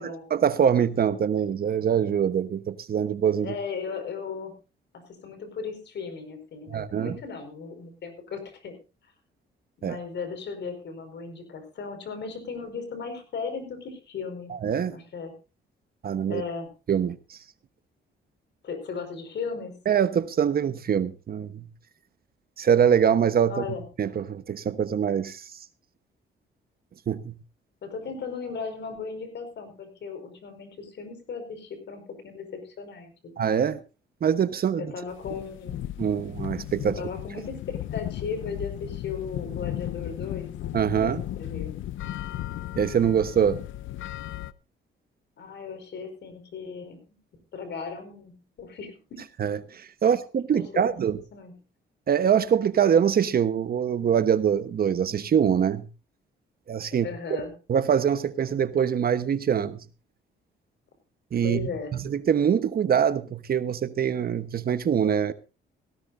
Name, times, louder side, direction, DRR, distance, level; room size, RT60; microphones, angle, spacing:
voice 1, 0.0-3.5 6.7-7.2 9.8-10.0 14.5-15.0 16.0-16.4 16.9-17.4 19.9-21.7 22.6-23.7 24.0-25.5 27.1-27.4 33.4-33.8 34.2-34.9 36.0-37.0 40.7-41.2 42.8-43.6 49.4-51.2 52.1-55.9 56.7-57.1 57.7-59.8 61.3-61.7 62.0-65.3, right 8 dB, 50° right, 1.1 m, -24 dB
voice 2, 3.4-4.5 4.9-8.7 9.8-14.5 14.9-15.3 16.3-16.7 18.6-19.8 23.5-23.8 27.8-33.1 34.7-35.8 36.9-40.5 41.0-41.7 45.4-47.0 47.5-49.3 50.0-50.1 50.5-51.5 57.0-57.5 61.4-61.9, left 5 dB, 60° left, 5.0 m, -36 dB
sound 1, 35.1-44.5, left 13 dB, 80° left, 0.7 m, -35 dB
18.0 x 16.0 x 2.6 m
cardioid pair, 90°, 20 cm